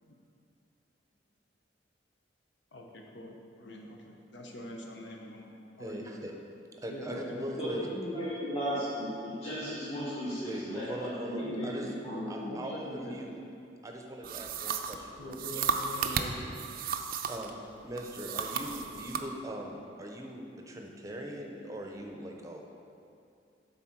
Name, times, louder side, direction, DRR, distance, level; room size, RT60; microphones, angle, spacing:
voice 1, 2.7-6.2 6.9-7.9 11.4-11.7 12.0-13.3 15.2-16.7, equal, 70° left, 1 dB, 0.9 m, -43 dB
voice 2, 5.8-6.3 6.8-7.9 10.4-11.9 12.3-13.4 13.8-15.7 17.3-17.5 17.8-22.7, right 1 dB, 20° right, 1 dB, 0.7 m, -40 dB
voice 3, 7.6-12.6, equal, 35° left, -13 dB, 1.8 m, -35 dB
sound 1, 14.2-17.5 18.0-19.3, right 6 dB, 50° right, 0.4 m, -34 dB
8.2 x 4.1 x 5.9 m, 2.6 s
head